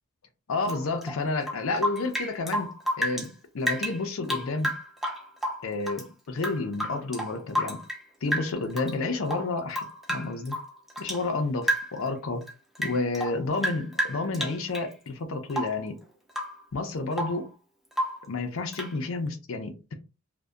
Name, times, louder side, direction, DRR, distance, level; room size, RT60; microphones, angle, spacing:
voice 1, 0.5-3.3 3.5-4.7 5.6-7.8 8.2-10.6 11.0-12.5 12.8-16.0 16.7-17.5 18.3-19.9, left 3 dB, 65° left, 0.5 m, -30 dB
Rain / Drip, 0.6-3.3 3.6-6.1 6.4-8.0 8.3-8.9 9.2-11.3 11.6-12.1 12.4-14.9 15.5-15.9 16.3-16.6 16.9-17.4 17.9-18.3 18.7-19.0, equal, ahead, 0.3 m, -31 dB
2.6 x 2.1 x 2.3 m
head